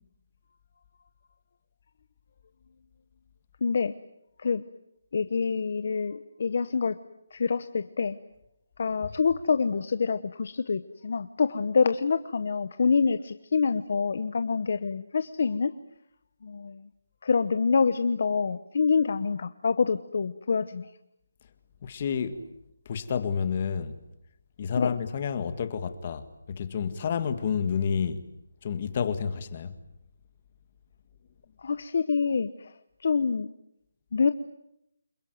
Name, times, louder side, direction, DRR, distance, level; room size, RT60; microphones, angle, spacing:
voice 1, 3.6-3.9 4.4-4.6 5.1-7.0 7.3-8.2 8.8-15.7 16.4-16.9 17.2-20.9 24.8-24.9 31.6-32.7 33.0-33.5 34.1-34.3, left 5 dB, 40° left, 1.0 m, -26 dB
voice 2, 21.8-22.5 22.9-24.0 24.6-28.2 28.6-29.7, left 7 dB, 25° left, 1.8 m, -29 dB
29.0 x 21.5 x 9.4 m
hypercardioid pair, 175°, 0 cm